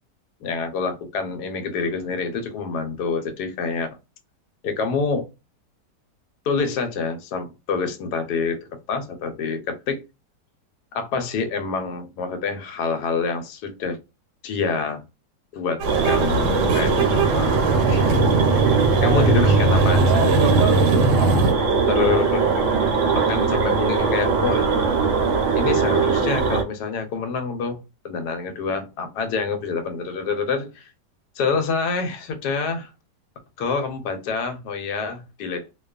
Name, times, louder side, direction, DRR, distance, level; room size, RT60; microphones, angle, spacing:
voice 1, 0.4-4.0 4.6-5.3 6.5-10.0 10.9-14.0 14.4-15.0 15.5-18.1 19.0-20.7 21.9-22.6 23.2-24.7 25.5-30.9 31.4-32.9 33.6-35.7, left 5 dB, 75° left, 1.1 m, -27 dB
sound 1, 15.8-26.6, right 5 dB, 60° right, 0.8 m, -21 dB
sound 2, 15.8-21.5, right 3 dB, 80° right, 1.2 m, -20 dB
2.6 x 2.3 x 2.3 m
omnidirectional pair, 1.8 m